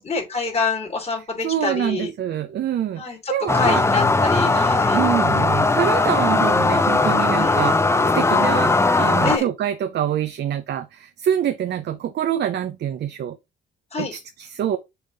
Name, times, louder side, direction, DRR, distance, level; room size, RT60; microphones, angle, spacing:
voice 1, 0.0-2.1 3.0-3.2 3.5-5.0 7.4-7.5 9.2-9.4 13.9-14.1, left 4 dB, 30° left, 3.0 m, -26 dB
voice 2, 1.4-3.8 4.9-13.4 14.0-14.8, right 10 dB, 60° right, 0.6 m, -25 dB
sound 1, 3.5-9.4, left 3 dB, 15° left, 0.5 m, -19 dB
6.9 x 3.5 x 4.0 m
cardioid pair, 90°, 20 cm